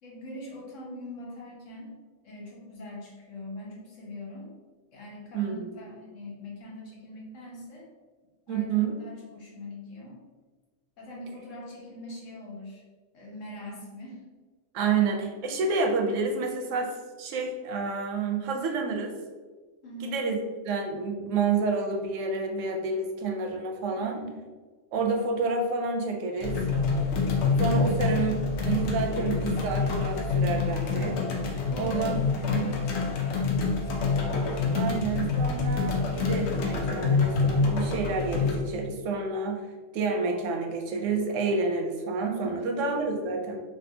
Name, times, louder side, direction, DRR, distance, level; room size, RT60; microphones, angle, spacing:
voice 1, 0.0-1.9 2.2-4.5 4.9-7.9 8.5-10.2 11.0-12.8 13.1-14.2 19.8-20.2 24.0-24.4 27.8-28.2 31.6-34.4 34.8-35.2 42.4-42.7, left 1 dB, 85° left, -4 dB, 1.3 m, -42 dB
voice 2, 5.3-5.8 8.5-9.0 14.7-16.9 17.2-19.1 20.0-20.4 20.6-24.2 24.9-26.6 27.6-28.3 28.6-31.2 31.8-32.1 32.5-32.7 34.7-39.7 39.9-43.6, right 4 dB, 85° right, 3 dB, 0.9 m, -29 dB
sound 1, 26.4-38.6, left 4 dB, 70° left, 0.8 m, -27 dB
3.3 x 2.6 x 2.7 m, 1.4 s
omnidirectional pair, 1.3 m